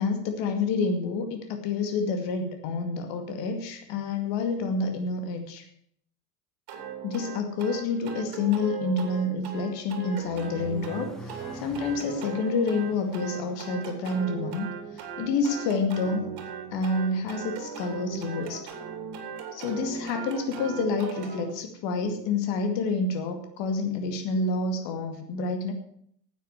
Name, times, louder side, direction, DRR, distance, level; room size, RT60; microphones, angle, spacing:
voice 1, 0.0-5.6 7.0-14.7 15.2-16.3 16.7-18.7 19.5-25.7, left 3 dB, 60° left, 5 dB, 2.4 m, -28 dB
sound 1, 6.7-21.4, right 7 dB, 50° right, 3.3 m, -38 dB
Accelerating revving vroom, 9.7-15.7, right 1 dB, ahead, 2.4 m, -46 dB
9.6 x 8.9 x 8.1 m, 0.66 s
hypercardioid pair, 90°, 49 cm